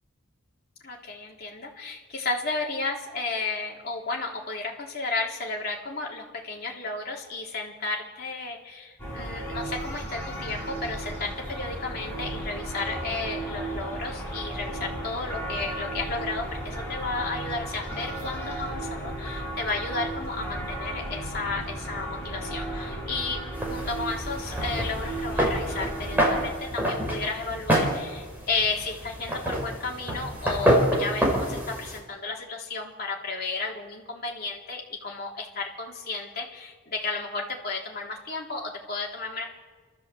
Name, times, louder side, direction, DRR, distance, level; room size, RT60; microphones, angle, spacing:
voice 1, 0.8-39.5, left 3 dB, 50° left, -2 dB, 3.4 m, -33 dB
sound 1, 9.0-26.5, right 1 dB, 10° left, 7.5 m, -34 dB
sound 2, 23.5-32.0, equal, 10° right, 4.5 m, -27 dB
28.0 x 14.0 x 7.7 m, 1.4 s
head